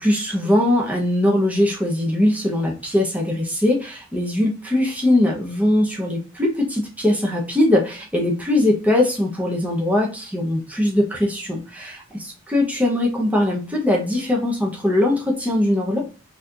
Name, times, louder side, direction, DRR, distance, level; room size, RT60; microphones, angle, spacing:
voice 1, 0.0-16.0, left 1 dB, 10° right, -2 dB, 0.8 m, -21 dB
4.0 x 2.8 x 2.5 m, 0.34 s
head